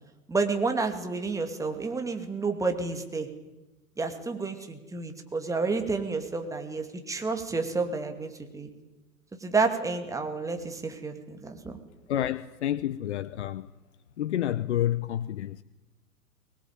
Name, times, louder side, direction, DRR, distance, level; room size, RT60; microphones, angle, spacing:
voice 1, 0.3-3.3 4.0-8.7 9.4-11.8, right 4 dB, 5° right, 2.5 m, -30 dB
voice 2, 12.1-13.7 14.2-15.6, left 12 dB, 50° left, 0.9 m, -29 dB
24.0 x 20.5 x 9.0 m
figure-of-eight pair, 115°, 46 cm